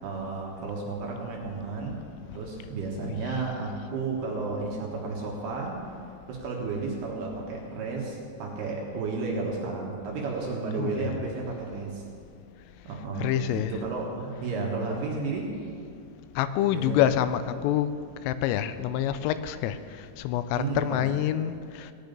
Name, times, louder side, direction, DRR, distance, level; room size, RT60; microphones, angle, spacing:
voice 1, 0.0-2.0 2.3-5.8 6.3-12.0 12.9-15.5 16.7-17.1 20.5-21.0, right 4 dB, 65° right, -1 dB, 2.9 m, -32 dB
voice 2, 3.1-3.4 10.8-11.2 13.2-13.8 16.4-17.9 18.3-19.8 20.2-21.9, left 11 dB, 85° left, 12 dB, 3.1 m, -27 dB
18.5 x 9.9 x 5.3 m, 2.3 s
omnidirectional pair, 5.9 m